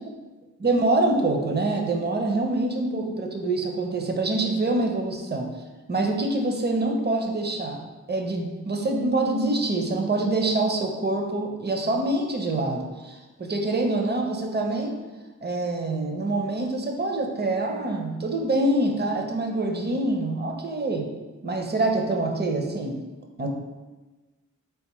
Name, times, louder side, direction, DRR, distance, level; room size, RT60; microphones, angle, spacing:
voice 1, 0.6-5.5 5.9-7.8 8.1-15.0 15.4-21.1 21.4-23.0 23.4-23.5, right 2 dB, 30° right, 2 dB, 0.6 m, -25 dB
3.9 x 3.5 x 3.0 m, 1.2 s
wide cardioid pair, 80°, 32 cm